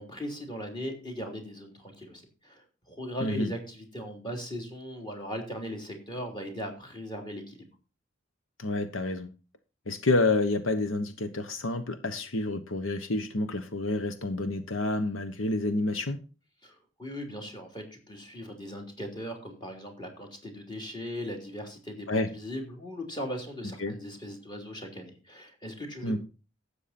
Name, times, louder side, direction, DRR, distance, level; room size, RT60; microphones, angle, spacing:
voice 1, 0.0-7.6 16.6-26.2, equal, 20° left, 3 dB, 3.2 m, -39 dB
voice 2, 3.2-3.5 8.6-9.3 9.9-16.2 22.1-22.3 23.8-23.9 26.0-26.2, left 2 dB, 80° left, 10 dB, 1.1 m, -29 dB
13.0 x 8.4 x 4.3 m, 0.33 s
head